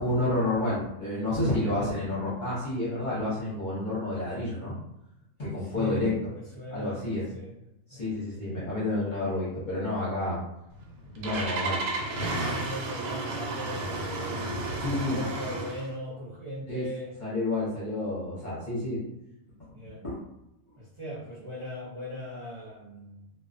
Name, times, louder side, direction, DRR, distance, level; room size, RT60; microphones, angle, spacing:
voice 1, 0.0-4.8 5.4-6.1 6.7-7.2 7.9-10.4 11.2-11.8 14.8-15.2 16.7-16.9 17.2-19.0 20.0-20.2, left 2 dB, 45° left, -9 dB, 0.7 m, -29 dB
voice 2, 5.6-7.5 7.9-8.1 12.3-17.1 19.7-20.0 20.8-23.2, equal, 30° right, -9 dB, 0.6 m, -39 dB
Engine starting, 10.7-15.9, right 2 dB, 90° right, 1.1 m, -32 dB
2.3 x 2.1 x 2.4 m, 0.86 s
omnidirectional pair, 1.5 m